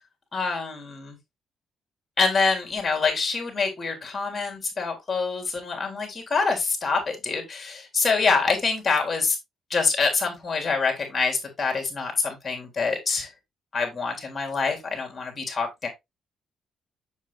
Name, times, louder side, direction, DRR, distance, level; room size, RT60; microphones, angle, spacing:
voice 1, 0.3-1.2 2.2-9.4 9.7-13.3 13.7-15.9, left 4 dB, 30° left, 3.5 m, -26 dB
7.2 x 7.2 x 2.5 m
cardioid pair, 90°, 0 cm